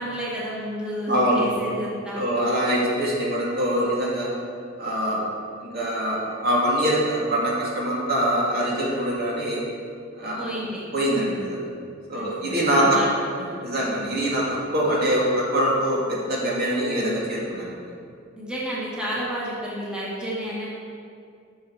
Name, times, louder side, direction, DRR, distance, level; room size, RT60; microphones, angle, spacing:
voice 1, 0.0-2.7 10.4-10.8 12.1-13.1 13.4-13.5 18.3-20.7, equal, 5° right, -7 dB, 1.7 m, -31 dB
voice 2, 1.1-1.5 2.2-4.3 4.8-5.2 5.7-9.6 10.2-10.5 10.9-11.6 12.1-13.0 13.6-14.4 14.7-17.7, equal, 55° right, -5 dB, 2.6 m, -23 dB
11.5 x 6.7 x 4.9 m, 2.4 s
head